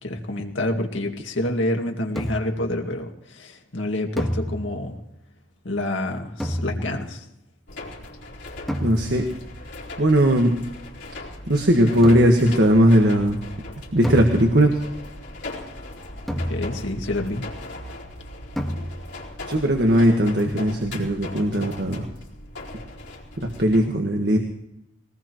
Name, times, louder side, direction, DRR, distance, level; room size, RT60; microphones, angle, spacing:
voice 1, 0.0-5.0 5.6-7.3 16.5-17.5, left 1 dB, 85° left, 2 dB, 2.1 m, -27 dB
sound 1, 2.2-2.7 4.2-5.0 6.4-7.2 8.7-9.4 12.0-12.6 14.0-14.9 16.3-17.1 18.6-19.3, equal, ahead, 1.7 m, -30 dB
sound 2, 7.7-23.8, left 2 dB, 65° left, 4.0 m, -39 dB
voice 2, 8.8-9.3 10.0-10.5 11.5-13.4 13.9-14.8 19.4-22.1 23.6-24.4, equal, 60° right, 3 dB, 1.6 m, -18 dB
21.5 x 18.5 x 3.1 m, 0.83 s
head